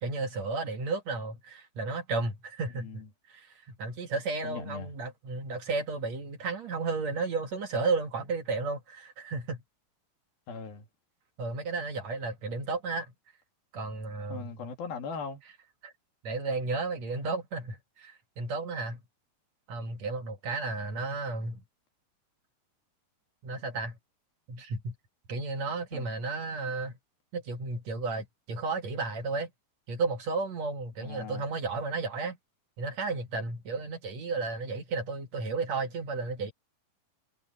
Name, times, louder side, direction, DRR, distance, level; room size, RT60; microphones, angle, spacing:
voice 1, 0.0-3.0 3.3-9.6 11.4-13.1 13.7-14.7 15.8-15.9 16.2-19.0 19.7-21.6 23.4-24.0 24.5-24.9 25.3-26.9 27.3-29.5 29.9-32.4 32.8-36.5, right 3 dB, 55° right, 2.7 m, -33 dB
voice 2, 2.7-3.1 4.4-4.9 10.5-10.9 14.3-15.4 25.9-26.1 31.0-31.4, left 5 dB, 75° left, 4.6 m, -39 dB
omnidirectional pair, 4.2 m